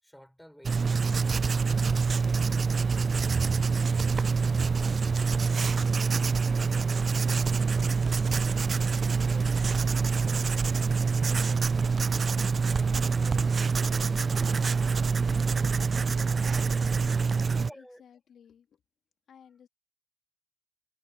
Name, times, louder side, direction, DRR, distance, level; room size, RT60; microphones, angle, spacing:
voice 1, 0.0-3.0 4.0-12.4 12.7-15.7 17.6-18.0, equal, ahead, 6.7 m, -54 dB
Writing, 0.6-17.7, right 5 dB, 35° right, 0.4 m, -26 dB
voice 2, 17.2-18.8 19.3-19.7, left 8 dB, 55° left, 2.8 m, -56 dB
supercardioid pair, 70°, 0 cm